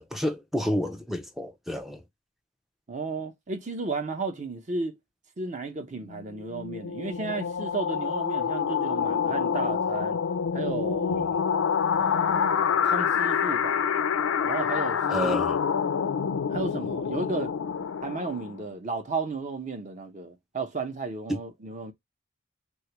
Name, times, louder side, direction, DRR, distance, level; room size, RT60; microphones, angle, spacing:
voice 1, 0.0-2.0 11.1-11.2 15.1-15.6 21.3-21.4, equal, ahead, 0.3 m, -30 dB
voice 2, 2.9-5.0 5.4-10.2 10.5-11.3 11.9-13.9 14.4-15.4 16.5-17.5 18.0-21.9, right 3 dB, 35° right, 0.6 m, -34 dB
sound 1, 6.0-18.7, left 7 dB, 85° left, 0.4 m, -27 dB
3.3 x 2.3 x 2.8 m
head